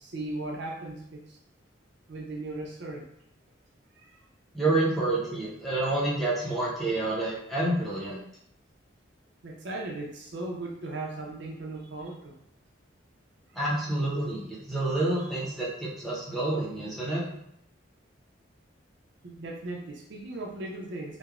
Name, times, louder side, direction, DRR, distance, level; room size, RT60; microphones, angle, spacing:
voice 1, 0.0-1.4 2.1-3.1 3.9-4.2 9.4-12.3 13.5-13.6 15.2-15.3 19.2-21.2, right 2 dB, 60° right, 0 dB, 0.4 m, -37 dB
voice 2, 4.5-8.2 13.5-17.2, right 2 dB, ahead, -7 dB, 0.6 m, -28 dB
3.0 x 2.1 x 2.3 m, 0.73 s
head